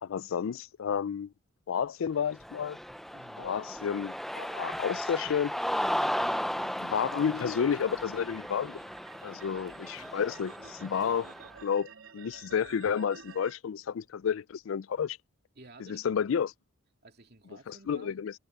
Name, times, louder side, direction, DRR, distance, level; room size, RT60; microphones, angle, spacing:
voice 1, 0.0-1.3 1.7-2.8 3.4-5.6 6.6-8.8 9.2-11.3 11.6-11.9 12.1-15.2 15.9-16.5 17.7-18.3, left 7 dB, 70° left, 0.4 m, -31 dB
Cheering, 2.3-11.5, equal, ahead, 0.5 m, -35 dB
voice 2, 3.1-3.5 6.2-6.5 15.5-16.2 17.0-18.2, right 2 dB, 50° right, 2.7 m, -53 dB
sound 1, 4.7-13.5, right 6 dB, 85° right, 3.3 m, -54 dB
head